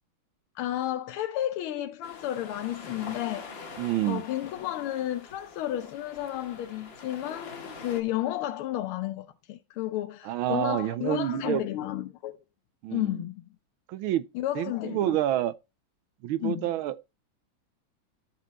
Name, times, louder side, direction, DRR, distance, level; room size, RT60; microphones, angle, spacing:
voice 1, 0.5-3.8 4.0-12.4 12.9-13.4 14.3-15.2 16.4-16.7, left 13 dB, 90° left, 1.5 m, -32 dB
sound 1, 2.0-8.0, left 4 dB, 40° left, 1.1 m, -45 dB
voice 2, 3.8-4.2 10.2-11.6 12.8-13.2 13.9-14.3 14.5-15.5 16.2-17.0, right 13 dB, 80° right, 1.4 m, -28 dB
12.5 x 4.4 x 4.0 m
omnidirectional pair, 2.3 m